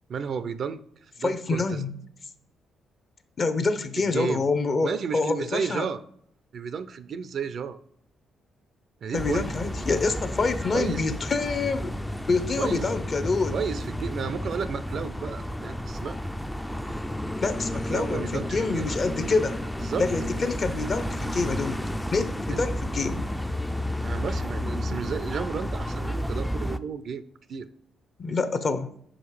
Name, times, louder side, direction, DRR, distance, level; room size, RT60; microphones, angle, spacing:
voice 1, 0.1-0.8 1.2-1.8 4.1-4.4 4.8-6.0 6.5-7.8 9.0-9.5 10.7-11.0 12.6-12.8 13.5-16.2 17.9-18.9 19.8-20.1 22.5-22.6 24.0-27.2 27.5-27.7, right 6 dB, 55° right, 14 dB, 0.5 m, -32 dB
voice 2, 1.2-2.0 3.4-5.9 9.1-12.0 12.3-13.6 17.4-19.6 20.0-23.2 28.2-28.9, left 4 dB, 45° left, 11 dB, 0.7 m, -27 dB
sound 1, 9.1-26.8, left 1 dB, 5° left, 0.4 m, -31 dB
5.2 x 5.1 x 4.8 m, 0.66 s
cardioid pair, 90°, 0 cm